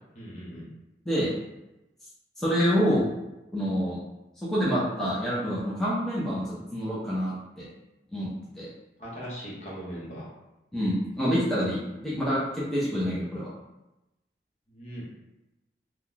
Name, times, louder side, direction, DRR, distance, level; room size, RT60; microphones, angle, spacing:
voice 1, 0.1-0.7 9.0-10.3 14.7-15.1, equal, 40° left, -6 dB, 1.0 m, -39 dB
voice 2, 2.4-3.0 3.5-4.0 4.4-7.6 8.1-8.3 8.5-8.7 10.7-13.5, equal, 5° left, -9 dB, 0.6 m, -27 dB
2.9 x 2.3 x 3.8 m, 0.97 s
head